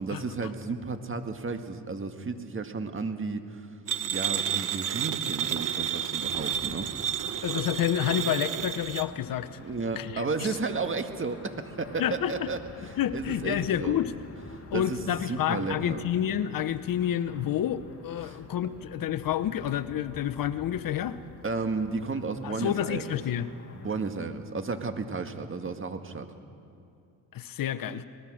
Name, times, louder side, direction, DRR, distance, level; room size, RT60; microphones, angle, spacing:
voice 1, 0.0-3.7 4.1-6.9 9.6-14.0 14.7-16.0 18.2-18.4 21.4-23.2 23.7-26.3, right 4 dB, 30° right, 7 dB, 1.9 m, -33 dB
sound 1, 3.9-9.1, right 9 dB, 50° right, 1.2 m, -31 dB
sound 2, 6.2-24.0, left 3 dB, 35° left, 2.4 m, -49 dB
voice 2, 7.4-9.6 10.0-10.5 12.0-12.5 13.0-14.1 14.7-21.2 22.4-23.5 27.3-28.1, left 10 dB, 55° left, 12 dB, 1.0 m, -29 dB
23.5 x 20.0 x 6.4 m, 2.5 s
supercardioid pair, 70°, 40 cm